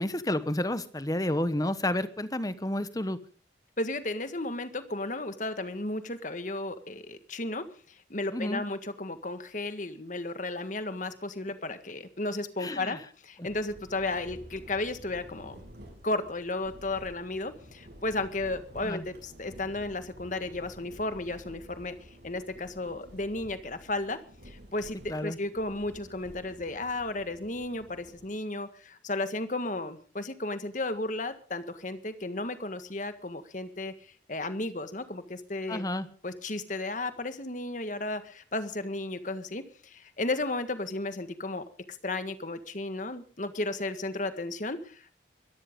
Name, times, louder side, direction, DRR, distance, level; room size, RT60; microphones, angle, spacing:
voice 1, 0.0-3.2 8.3-8.6 12.6-13.0 13.4-13.5 18.8-19.0 25.1-25.4 35.7-36.1, left 1 dB, 20° left, 13 dB, 1.2 m, -30 dB
voice 2, 3.8-15.6 16.0-22.0 22.2-24.2 24.4-35.8 36.2-45.1, left 2 dB, 45° left, 10 dB, 1.7 m, -34 dB
sound 1, 13.5-28.3, equal, 65° right, 6.7 m, -51 dB
23.0 x 13.5 x 3.8 m, 0.41 s
head